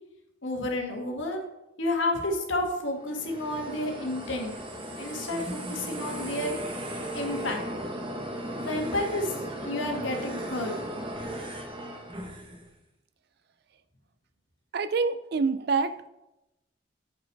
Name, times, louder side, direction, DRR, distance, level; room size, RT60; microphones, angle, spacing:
voice 1, 0.4-1.4 1.8-4.5 5.0-6.5 7.1-7.6 8.6-9.3 9.6-10.8, left 1 dB, 80° left, 2 dB, 1.5 m, -30 dB
sound 1, 2.9-12.7, right 1 dB, 25° right, 0.9 m, -36 dB
voice 2, 14.7-16.1, right 4 dB, 55° right, 12 dB, 0.4 m, -26 dB
6.1 x 5.6 x 4.6 m, 0.92 s
head